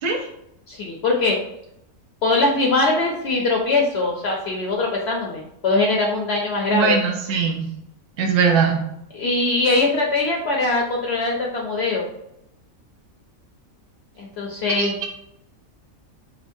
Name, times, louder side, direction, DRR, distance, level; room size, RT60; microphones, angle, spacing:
voice 1, 0.7-1.4 2.2-7.0 9.1-12.1 14.2-15.0, left 3 dB, 60° left, 0 dB, 0.8 m, -21 dB
voice 2, 6.7-7.6 8.2-8.8 14.7-15.1, right 6 dB, 55° right, 1 dB, 0.8 m, -20 dB
5.0 x 2.0 x 2.6 m, 0.80 s
omnidirectional pair, 1.4 m